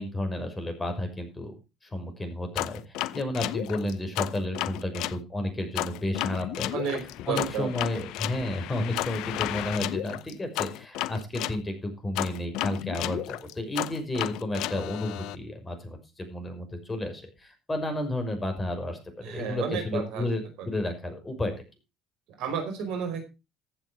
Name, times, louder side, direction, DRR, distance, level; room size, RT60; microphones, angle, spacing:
voice 1, 0.0-1.5 1.8-6.7 7.3-19.0 19.3-21.5, left 1 dB, 20° left, 5 dB, 6.0 m, -32 dB
sound 1, 2.5-5.2 5.7-11.6 12.1-15.3, left 15 dB, 70° left, 0.6 m, -33 dB
voice 2, 6.7-7.7 19.2-20.3 20.6-20.7 22.4-23.2, right 7 dB, 70° right, 6 dB, 4.8 m, -32 dB
15.0 x 8.1 x 4.8 m, 0.28 s
hypercardioid pair, 65°, 0 cm